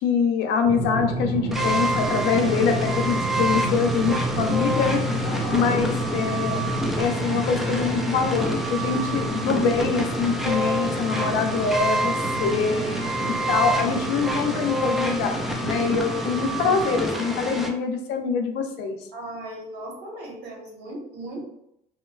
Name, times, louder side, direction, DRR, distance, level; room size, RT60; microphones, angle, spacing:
voice 1, 0.0-5.0 5.5-6.7 7.0-12.8 13.5-19.0, left 5 dB, 85° left, 5 dB, 0.5 m, -24 dB
Drum, 0.7-16.8, right 1 dB, 45° right, 0.7 m, -31 dB
sound 1, 1.5-17.7, right 1 dB, ahead, 0.3 m, -27 dB
voice 2, 5.2-5.7 19.1-21.4, right 2 dB, 85° right, -3 dB, 1.1 m, -36 dB
3.1 x 2.1 x 2.3 m, 0.80 s
cardioid pair, 110°, 17 cm